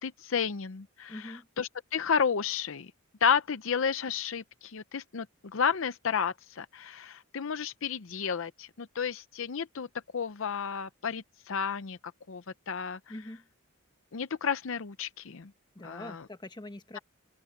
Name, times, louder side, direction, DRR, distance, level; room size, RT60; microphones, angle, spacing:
voice 1, 0.0-2.9 3.2-9.9 10.1-12.0 12.3-13.0 14.1-15.5 15.8-16.2, left 6 dB, 60° left, 0.6 m, -32 dB
voice 2, 1.1-1.5 13.1-13.5 15.7-17.0, left 1 dB, 20° left, 1.3 m, -43 dB
open air
head